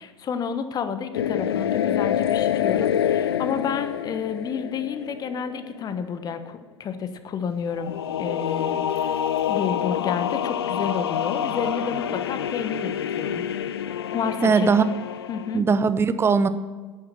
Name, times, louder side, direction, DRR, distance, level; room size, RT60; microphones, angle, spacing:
voice 1, 0.0-7.9 8.2-9.2 9.5-13.4 14.1-14.7 15.3-15.6, left 6 dB, 30° left, 10 dB, 1.1 m, -30 dB
sound 1, 1.1-5.7 7.8-15.6, left 9 dB, 65° left, 0.6 m, -27 dB
voice 2, 14.4-14.8 15.5-16.5, right 5 dB, 15° right, 13 dB, 0.7 m, -19 dB
10.5 x 9.0 x 6.0 m, 1.4 s
figure-of-eight pair, 80°, 14 cm